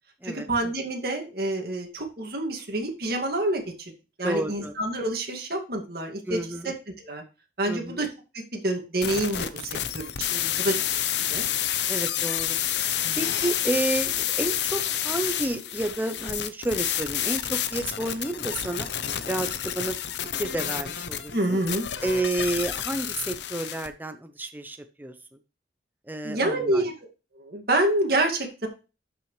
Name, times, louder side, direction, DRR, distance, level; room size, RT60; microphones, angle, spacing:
voice 1, 0.2-3.9 4.2-6.4 6.6-7.2 7.6-8.1 8.3-10.3 10.6-10.7 11.3-11.5 13.0-13.2 21.3-21.8 26.2-26.9 27.4-28.7, right 1 dB, 60° right, 2 dB, 2.2 m, -27 dB
voice 2, 4.2-4.7 6.2-6.7 7.7-8.0 10.3-10.7 11.9-12.6 13.2-18.9 19.3-20.0 20.4-21.3 22.0-25.1 26.1-26.8, right 1 dB, 10° right, 7 dB, 0.6 m, -30 dB
sound 1, 9.0-23.9, left 10 dB, 75° left, 0.7 m, -29 dB
12.5 x 5.9 x 3.2 m, 0.32 s
head